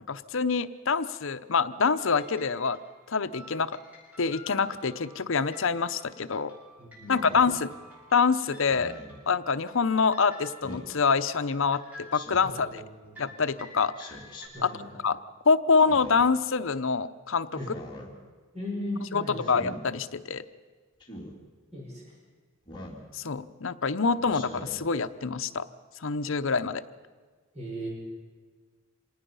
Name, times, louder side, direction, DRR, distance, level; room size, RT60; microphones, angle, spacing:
voice 1, 0.1-2.8 3.1-3.7 4.2-6.5 7.1-7.7 8.1-8.9 9.3-12.8 13.2-14.2 14.6-14.7 15.0-15.2 15.4-17.5 19.1-20.4 23.1-25.7 26.0-26.8, left 5 dB, 65° left, 10 dB, 0.8 m, -26 dB
sound 1, 2.0-14.5, left 1 dB, 10° right, 7.7 m, -51 dB
voice 2, 6.8-7.4 12.4-13.2 14.5-14.9 17.6-17.7 18.5-19.6 21.7-22.0 24.2-24.3 27.5-27.9, equal, 30° right, -3 dB, 5.5 m, -37 dB
Speech synthesizer, 7.2-7.6 8.7-9.2 10.6-10.9 12.1-12.6 14.0-14.5 15.7-16.3 17.6-18.1 19.4-19.8 21.0-21.3 22.7-23.1 24.3-24.8, left 1 dB, 20° left, 3.3 m, -43 dB
26.0 x 19.5 x 5.6 m, 1.5 s
head